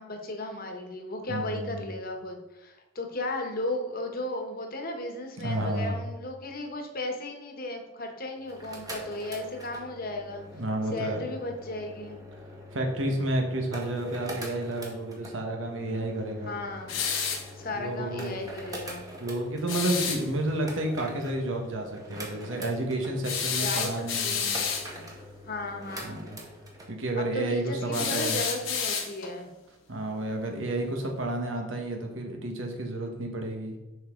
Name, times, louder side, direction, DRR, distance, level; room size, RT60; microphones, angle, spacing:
voice 1, 0.0-10.4 10.9-12.2 16.4-16.9 17.5-19.1 23.6-24.6 25.5-26.2 27.2-29.5, left 2 dB, 50° left, 3 dB, 1.3 m, -35 dB
voice 2, 1.3-1.9 5.4-6.0 10.5-11.3 12.7-16.5 17.8-18.3 19.2-24.5 26.0-26.4 26.9-28.4 29.9-33.8, right 1 dB, 75° right, 2 dB, 1.5 m, -31 dB
sound 1, 8.4-26.9, equal, 20° right, 1.4 m, -44 dB
sound 2, 16.9-17.5 19.7-20.2 23.2-24.9 27.9-29.4, left 6 dB, 85° left, 1.3 m, -30 dB
7.9 x 5.7 x 3.9 m, 1.1 s
head